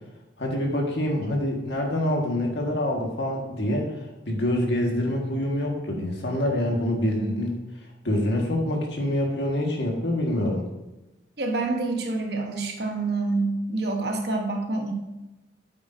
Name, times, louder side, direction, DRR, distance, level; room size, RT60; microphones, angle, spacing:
voice 1, 0.4-3.9 4.3-7.5 8.1-10.6, left 1 dB, 65° left, 0 dB, 1.7 m, -26 dB
voice 2, 11.4-14.9, right 3 dB, 60° right, 3 dB, 1.2 m, -27 dB
8.5 x 8.1 x 2.7 m, 1.0 s
head